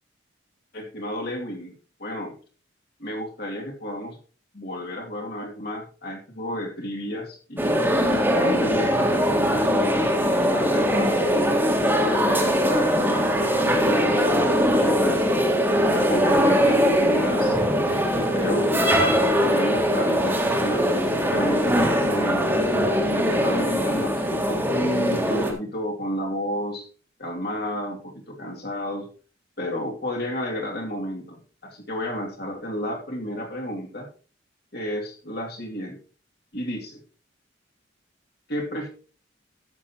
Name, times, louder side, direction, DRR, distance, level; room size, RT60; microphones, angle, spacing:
voice 1, 0.7-1.7 2.0-2.4 3.0-4.2 4.5-7.8 8.4-11.5 12.0-15.2 15.9-22.6 23.0-26.9 27.2-29.1 29.6-34.1 34.7-36.0 36.5-37.0 38.5-38.9, equal, 55° left, 1 dB, 2.6 m, -32 dB
sound 1, 7.6-25.5, equal, 10° right, 1.7 m, -21 dB
13.0 x 7.6 x 3.0 m, 0.38 s
head